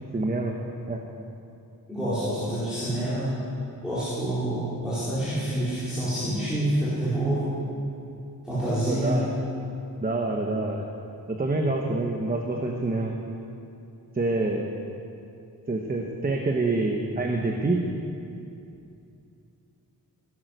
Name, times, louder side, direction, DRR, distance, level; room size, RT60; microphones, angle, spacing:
voice 1, 0.1-0.6 0.9-1.0 8.8-9.3 10.0-10.9 11.3-13.2 14.1-14.7 15.7-17.8, right 2 dB, 25° right, 1 dB, 1.0 m, -26 dB
voice 2, 1.9-3.3 3.8-7.5 8.4-9.2, right 1 dB, ahead, -14 dB, 4.3 m, -27 dB
17.5 x 11.0 x 6.6 m, 2.7 s
wide cardioid pair, 180°, 36 cm